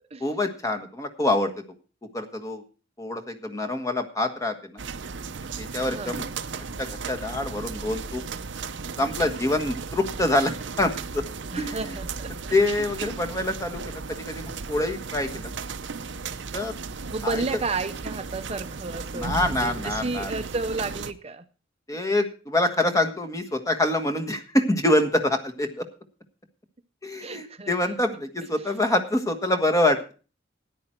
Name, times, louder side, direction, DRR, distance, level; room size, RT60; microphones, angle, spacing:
voice 1, 0.2-1.5 2.1-2.6 3.0-4.8 5.6-6.2 6.8-8.2 9.0-11.2 11.6-11.9 12.5-15.5 16.5-16.7 17.2-17.4 19.1-20.3 21.9-25.9 27.0-30.1, left 1 dB, 20° left, 6 dB, 1.5 m, -25 dB
sound 1, 4.8-21.1, right 4 dB, 75° right, 0.8 m, -35 dB
voice 2, 5.9-6.3 11.5-12.3 12.8-12.9 17.1-21.4 27.2-28.0, right 3 dB, 35° right, 8 dB, 0.7 m, -32 dB
13.5 x 10.0 x 4.5 m, 0.36 s
head